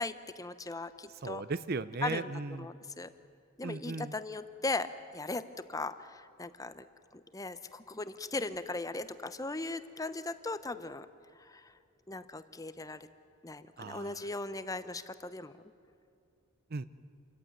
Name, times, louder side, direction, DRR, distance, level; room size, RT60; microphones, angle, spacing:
voice 1, 0.0-1.4 2.0-2.3 2.6-3.1 3.6-6.8 7.1-11.1 11.4-11.7 12.1-13.1 13.4-15.5, left 2 dB, 15° left, 12 dB, 0.7 m, -38 dB
voice 2, 1.2-2.7 3.6-4.1 13.8-14.3 16.7-16.9, right 3 dB, 50° right, 15 dB, 0.6 m, -37 dB
27.5 x 15.0 x 9.4 m, 2.5 s
head